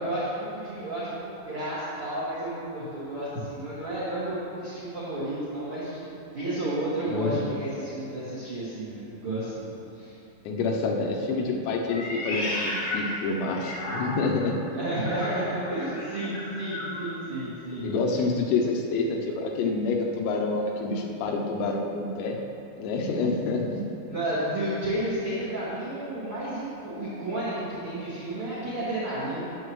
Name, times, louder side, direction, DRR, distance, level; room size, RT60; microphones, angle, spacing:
voice 1, 0.0-9.7 9.9-10.1 14.7-18.2 24.1-29.4, right 1 dB, 50° right, -12 dB, 1.7 m, -32 dB
voice 2, 7.1-7.5 10.5-14.6 17.8-22.4 22.8-23.8, left 3 dB, 85° left, 0 dB, 3.5 m, -27 dB
Meow, 11.9-14.4 15.0-17.1, left 1 dB, 50° left, 1.9 m, -34 dB
20.0 x 7.9 x 3.1 m, 2.9 s
omnidirectional pair, 5.8 m